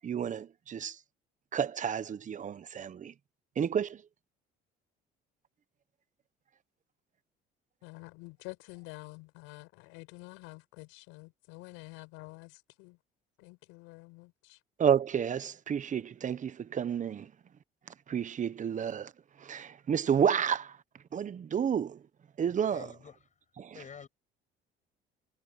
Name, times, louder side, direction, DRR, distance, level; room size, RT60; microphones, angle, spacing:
voice 1, 0.0-1.0 1.5-3.1 3.6-4.0 14.8-17.3 18.1-19.1 19.4-20.7 21.1-22.0 22.4-22.9 23.6-23.8, right 8 dB, 40° right, 1.2 m, -30 dB
voice 2, 7.8-13.0 13.4-14.6, left 26 dB, 85° left, 6.8 m, -48 dB
voice 3, 22.7-23.2 23.7-24.1, left 7 dB, 40° left, 7.9 m, -47 dB
supercardioid pair, 90°, 20 cm